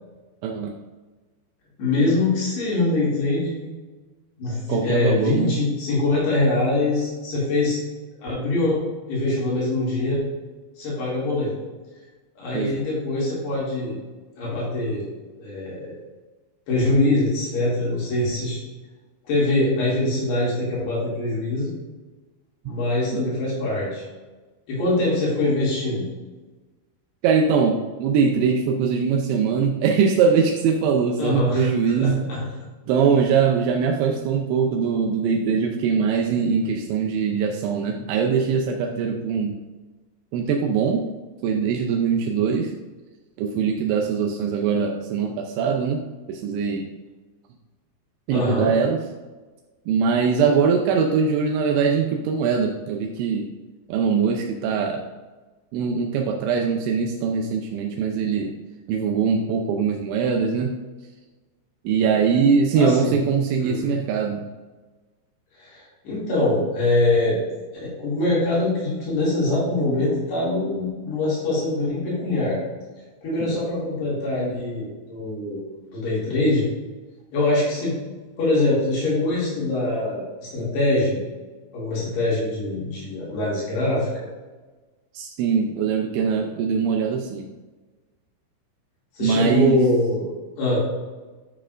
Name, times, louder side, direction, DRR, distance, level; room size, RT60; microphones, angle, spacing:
voice 1, 0.4-0.8 4.7-5.6 12.5-12.9 22.7-22.8 27.2-32.2 32.9-39.6 40.3-41.1 41.4-42.7 43.4-46.0 46.3-46.9 48.3-49.0 49.9-53.5 53.9-55.0 55.7-58.5 58.9-60.8 61.8-64.4 85.1-87.5 89.2-89.8, right 6 dB, 85° right, 2 dB, 3.0 m, -22 dB
voice 2, 1.8-3.7 4.4-7.8 8.2-8.8 9.1-10.2 10.8-11.5 12.4-14.0 14.4-15.0 15.4-15.9 16.7-18.6 19.3-21.7 22.6-24.0 24.7-26.1 31.2-32.4 48.3-48.7 62.7-63.2 63.6-63.9 65.6-67.4 67.8-72.6 73.2-75.6 75.9-76.7 77.3-77.9 78.4-81.2 81.7-84.3 89.2-90.3 90.6-90.8, left 2 dB, 70° left, -7 dB, 4.4 m, -23 dB
12.0 x 6.6 x 2.5 m, 1.3 s
omnidirectional pair, 5.1 m